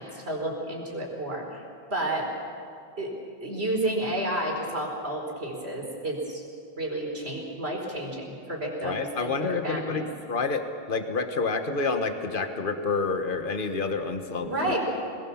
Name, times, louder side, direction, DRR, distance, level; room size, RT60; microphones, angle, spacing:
voice 1, 0.0-1.4 1.9-2.3 3.0-3.1 3.4-6.4 6.8-10.1 14.4-14.8, right 1 dB, 75° right, 0 dB, 4.8 m, -31 dB
voice 2, 8.8-10.6 10.9-14.8, left 4 dB, 55° left, 7 dB, 1.5 m, -28 dB
23.5 x 20.0 x 7.2 m, 2.4 s
omnidirectional pair, 1.1 m